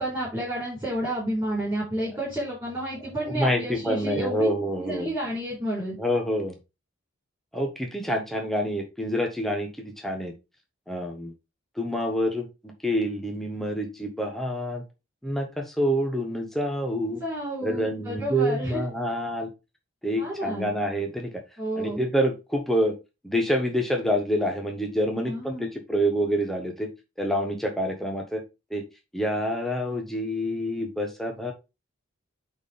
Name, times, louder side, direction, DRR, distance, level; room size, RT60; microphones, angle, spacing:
voice 1, 0.0-4.5 4.8-6.0 17.2-18.8 20.2-20.7 21.6-22.0 25.2-25.7, right 1 dB, 15° right, -7 dB, 4.6 m, -30 dB
voice 2, 3.2-5.1 6.0-6.5 7.5-10.3 10.9-11.3 11.8-12.5 12.8-14.8 15.2-17.2 17.6-19.5 20.0-21.3 21.8-22.9 23.2-26.9 27.2-28.4 28.7-28.8 29.1-31.5, equal, ahead, 2 dB, 1.2 m, -27 dB
9.2 x 4.4 x 3.4 m, 0.26 s
head